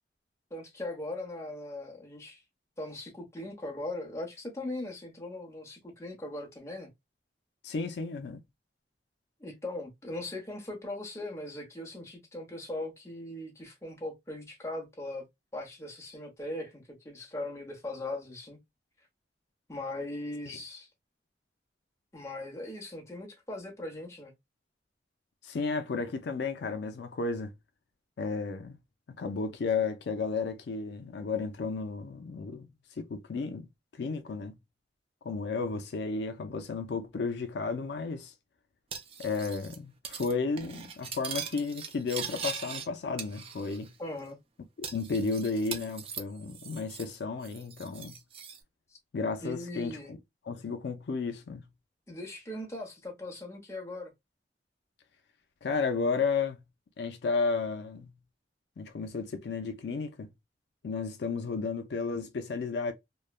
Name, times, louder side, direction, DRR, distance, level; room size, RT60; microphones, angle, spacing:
voice 1, 0.5-2.4 2.8-6.9 9.4-15.2 15.5-18.6 19.7-20.9 22.1-24.3 44.0-44.4 49.4-50.1 52.1-54.1, left 1 dB, 15° left, 0.9 m, -39 dB
voice 2, 7.6-8.4 20.5-20.6 25.4-27.5 28.2-28.8 29.2-32.7 33.0-33.7 34.0-34.5 35.2-38.3 39.2-43.9 44.8-48.1 49.1-50.2 50.5-51.6 55.6-56.6 57.0-58.1 58.8-60.3 60.8-62.9, left 4 dB, 70° left, 0.4 m, -33 dB
Cutlery silverware, 38.9-39.8 40.0-40.3 40.6-42.9 43.2-43.9 44.2-44.3 44.8-47.2 47.4-48.6, right 6 dB, 35° right, 0.4 m, -40 dB
3.0 x 2.1 x 2.2 m
head